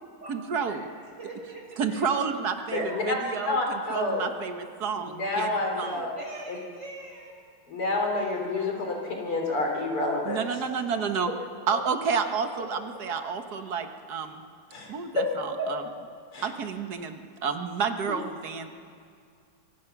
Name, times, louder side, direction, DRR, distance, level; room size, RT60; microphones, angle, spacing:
voice 1, 0.3-0.8 1.8-6.0 10.2-11.3 11.7-14.4 14.9-15.8 16.4-18.7, right 6 dB, 50° right, 6 dB, 1.7 m, -30 dB
voice 2, 1.2-2.1 2.9-3.0 5.3-5.5 6.2-7.3 8.2-9.4, right 2 dB, 35° right, -2 dB, 6.1 m, -43 dB
voice 3, 2.7-3.2 3.5-4.2 5.0-6.1 6.5-6.6 7.7-10.4 14.7-15.2 15.6-15.7 16.3-16.5, left 2 dB, 90° left, 1 dB, 4.6 m, -28 dB
25.5 x 23.5 x 6.0 m, 2.2 s
omnidirectional pair, 2.4 m